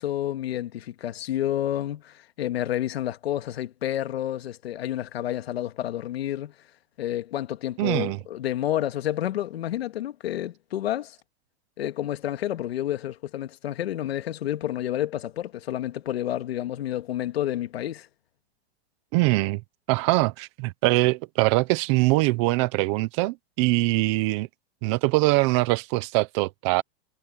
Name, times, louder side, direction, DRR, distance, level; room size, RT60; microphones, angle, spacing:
voice 1, 0.0-6.5 7.0-11.2 11.8-18.1, left 12 dB, 85° left, 1.9 m, -29 dB
voice 2, 7.8-8.2 19.1-19.6 19.9-24.5 24.8-26.8, right 22 dB, 30° right, 0.8 m, -23 dB
supercardioid pair, 170°, 30 cm